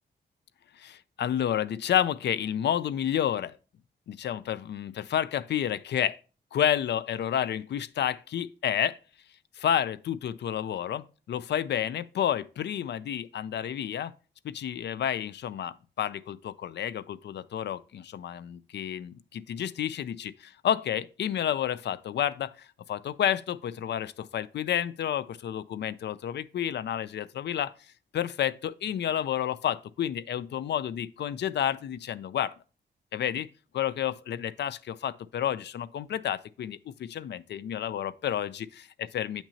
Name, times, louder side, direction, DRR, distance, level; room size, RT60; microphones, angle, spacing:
voice 1, 0.8-3.6 4.1-6.2 6.5-9.0 9.6-14.1 14.4-27.7 28.1-32.5 33.1-33.5 33.7-38.9 39.1-39.4, left 10 dB, 70° left, 0.4 m, -30 dB
8.6 x 6.0 x 2.7 m
wide cardioid pair, 140°, 18 cm